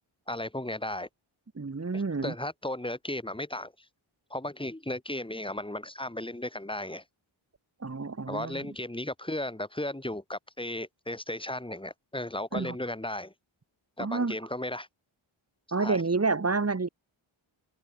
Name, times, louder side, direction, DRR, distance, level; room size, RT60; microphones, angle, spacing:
voice 1, 0.3-1.1 1.9-3.7 4.3-7.0 8.3-13.3 14.0-14.9 15.8-16.0, left 1 dB, 10° left, 2.7 m, -35 dB
voice 2, 1.5-2.3 7.8-8.6 12.5-12.7 14.0-14.4 15.7-16.9, right 4 dB, 30° right, 1.5 m, -29 dB
open air
wide cardioid pair, 100°, 50 cm